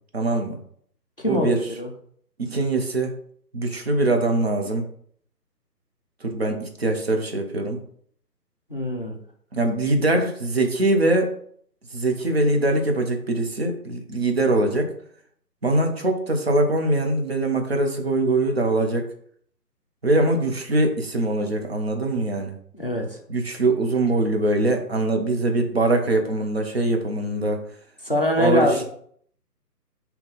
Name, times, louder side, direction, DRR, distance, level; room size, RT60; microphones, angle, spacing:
voice 1, 0.1-0.6 1.2-1.6 2.4-3.1 3.5-4.9 6.2-7.8 9.5-11.4 11.9-14.9 15.6-19.1 20.0-22.6 23.3-27.6 28.4-28.8, right 2 dB, 40° right, 4 dB, 0.6 m, -22 dB
voice 2, 1.2-1.9 8.7-9.2 22.7-23.2 28.0-28.8, left 1 dB, 35° left, 2 dB, 0.5 m, -23 dB
3.7 x 2.8 x 3.9 m, 0.62 s
figure-of-eight pair, 150°, 49 cm